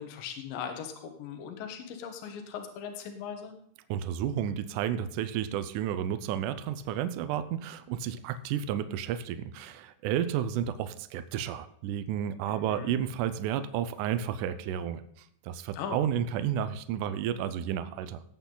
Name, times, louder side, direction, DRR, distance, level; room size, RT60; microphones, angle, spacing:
voice 1, 0.0-3.5 12.5-13.0 15.7-16.0, left 7 dB, 70° left, 6 dB, 2.9 m, -39 dB
voice 2, 3.9-18.2, right 9 dB, 80° right, 13 dB, 1.8 m, -32 dB
18.0 x 8.2 x 3.9 m, 0.68 s
omnidirectional pair, 4.5 m